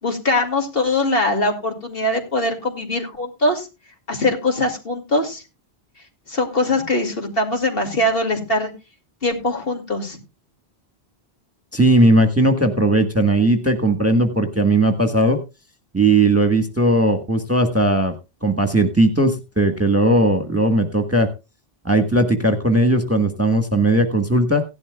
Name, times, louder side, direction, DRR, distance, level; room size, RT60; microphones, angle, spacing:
voice 1, 0.0-3.7 4.1-5.4 6.3-8.7 9.2-10.2, left 2 dB, 60° left, 4 dB, 2.6 m, -22 dB
voice 2, 11.7-15.4 15.9-18.2 18.4-21.3 21.8-24.6, right 1 dB, 15° right, 8 dB, 1.3 m, -17 dB
16.5 x 11.5 x 2.3 m, 0.27 s
omnidirectional pair, 1.1 m